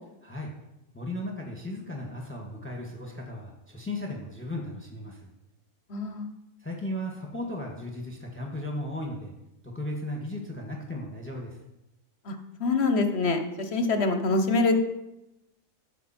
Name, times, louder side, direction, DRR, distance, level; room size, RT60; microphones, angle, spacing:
voice 1, 0.2-0.5 0.9-5.3 6.6-9.3 9.6-11.6, left 1 dB, 10° left, 0 dB, 1.8 m, -36 dB
voice 2, 5.9-6.2 12.3-12.4 12.6-14.7, left 3 dB, 45° left, 6 dB, 1.4 m, -25 dB
15.0 x 8.1 x 4.5 m, 0.91 s
omnidirectional pair, 1.6 m